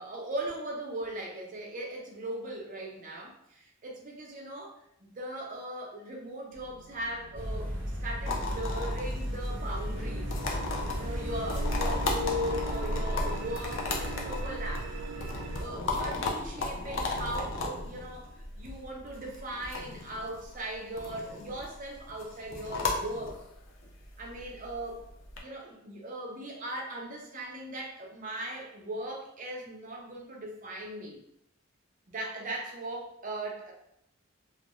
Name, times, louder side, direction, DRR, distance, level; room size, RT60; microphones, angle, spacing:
voice 1, 0.0-4.7 5.0-7.7 8.0-10.3 10.9-14.9 15.6-23.3 24.2-25.0 25.4-31.2 32.1-33.7, right 1 dB, 40° right, -1 dB, 0.6 m, -38 dB
sound 1, 6.5-15.7, right 2 dB, 85° right, 0.3 m, -42 dB
sound 2, 7.3-13.6, equal, 10° left, 0.7 m, -36 dB
sound 3, 8.2-25.4, left 2 dB, 70° left, 0.5 m, -35 dB
2.4 x 2.2 x 3.0 m, 0.75 s
head